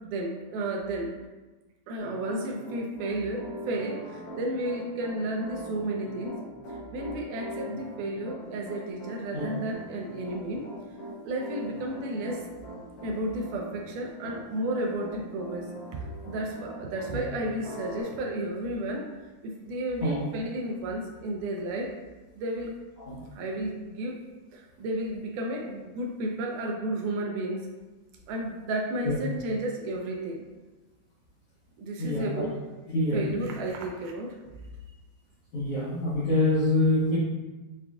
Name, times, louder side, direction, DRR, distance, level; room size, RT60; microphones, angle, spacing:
voice 1, 0.1-1.1 1.9-10.7 11.2-12.5 13.0-19.1 19.4-22.0 22.3-22.7 23.2-24.2 24.5-27.7 28.3-30.5 31.8-32.6 33.1-34.4, right 1 dB, 80° right, 0 dB, 1.9 m, -32 dB
Piano, 2.0-17.2 17.6-18.0, right 1 dB, 80° left, 2.6 m, -41 dB
voice 2, 29.0-29.4 32.0-32.5 32.9-33.3 35.5-37.2, left 2 dB, 65° left, -10 dB, 1.6 m, -26 dB
6.7 x 2.4 x 2.4 m, 1.2 s
omnidirectional pair, 3.8 m